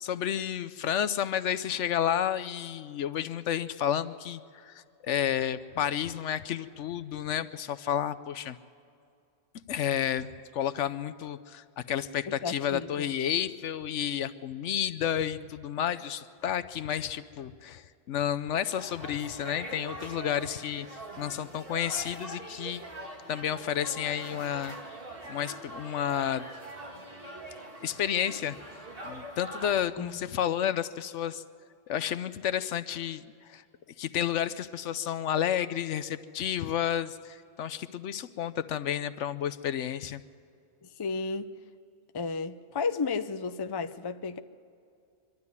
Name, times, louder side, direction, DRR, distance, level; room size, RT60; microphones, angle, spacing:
voice 1, 0.0-8.6 9.7-20.9 21.2-22.8 23.3-24.8 25.3-26.4 27.8-28.6 29.0-31.4 31.9-33.2 33.5-33.6 34.0-40.2, left 10 dB, 75° left, 13 dB, 1.0 m, -31 dB
voice 2, 12.3-13.1 30.0-30.2 41.0-41.5 42.1-44.4, left 4 dB, 30° left, 9 dB, 0.4 m, -33 dB
sound 1, 18.5-29.8, right 1 dB, 50° right, 2.5 m, -43 dB
24.0 x 12.5 x 9.7 m, 2.4 s
omnidirectional pair, 1.3 m